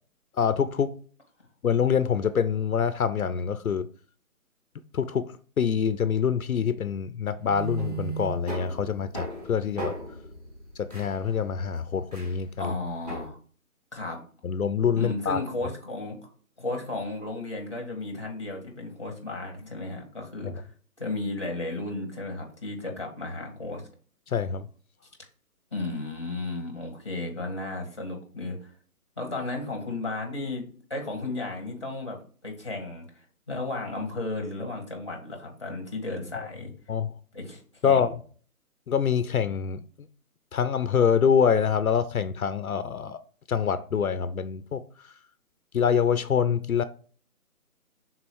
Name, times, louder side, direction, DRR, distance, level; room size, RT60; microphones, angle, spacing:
voice 1, 0.4-0.9 1.6-3.9 4.9-9.9 10.8-12.7 14.4-15.4 24.3-24.7 36.3-36.5 36.9-37.1 37.8-38.2 38.9-39.8 40.5-43.2 43.5-45.1 45.7-46.8, left 7 dB, 70° left, 0.6 m, -25 dB
sound 1, 7.4-13.3, right 3 dB, 25° right, 2.1 m, -37 dB
voice 2, 12.6-13.4 13.9-14.2 14.9-16.2 16.6-20.7 21.0-23.9 25.7-28.7 29.2-36.7 37.3-38.1, left 2 dB, 20° left, 0.9 m, -34 dB
5.5 x 3.9 x 4.4 m
hypercardioid pair, 175°, 45 cm